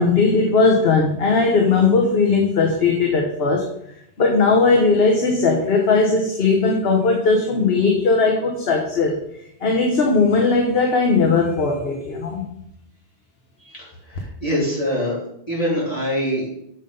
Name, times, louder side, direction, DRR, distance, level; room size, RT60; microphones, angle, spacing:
voice 1, 0.0-3.7 4.2-9.2 9.6-12.5, left 4 dB, 60° left, 1 dB, 1.3 m, -18 dB
voice 2, 13.6-15.2 15.5-16.5, equal, 30° left, -6 dB, 3.5 m, -24 dB
7.3 x 5.6 x 5.3 m, 0.73 s
omnidirectional pair, 1.2 m